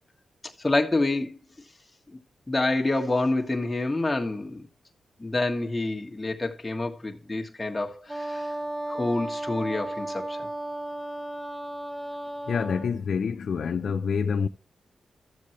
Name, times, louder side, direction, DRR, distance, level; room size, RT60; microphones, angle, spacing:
voice 1, 0.6-1.4 2.1-2.2 2.5-4.7 5.2-8.5 8.9-10.5, left 2 dB, 20° left, 1.7 m, -27 dB
Wind instrument woodwind instrument, 8.1-13.0, right 1 dB, 25° right, 5.5 m, -34 dB
voice 2, 12.5-14.5, left 6 dB, 70° left, 0.6 m, -27 dB
13.5 x 7.4 x 3.1 m
cardioid pair, 80°, 0 cm